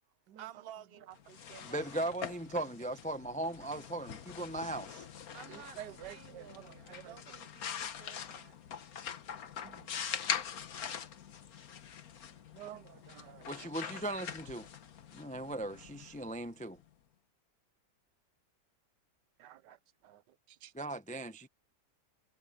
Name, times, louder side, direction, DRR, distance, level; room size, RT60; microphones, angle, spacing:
voice 1, 0.4-2.0 5.3-5.8 6.1-8.6, right 10 dB, 50° right, 0.8 m, -53 dB
sound 1, 1.2-16.8, left 8 dB, 60° left, 1.5 m, -43 dB
voice 2, 1.7-5.1 13.5-14.7 15.1-16.8 20.7-21.5, right 1 dB, 10° left, 0.3 m, -38 dB
voice 3, 5.5-7.2 9.6-9.9 12.5-13.7 19.4-20.7, right 13 dB, 85° right, 1.4 m, -51 dB
omnidirectional pair, 1.8 m